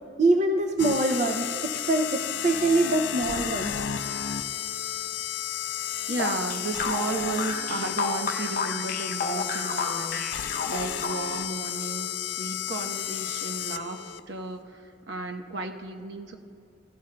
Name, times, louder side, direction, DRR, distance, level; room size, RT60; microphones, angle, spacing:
voice 1, 0.2-3.7, right 2 dB, 40° right, 4 dB, 0.5 m, -24 dB
sound 1, 0.8-14.2, left 10 dB, 80° left, 0.4 m, -32 dB
voice 2, 6.1-16.4, right 2 dB, 70° right, 3 dB, 0.9 m, -34 dB
sound 2, 6.2-11.5, left 3 dB, 50° left, 0.7 m, -31 dB
16.0 x 15.0 x 2.2 m, 2.5 s
head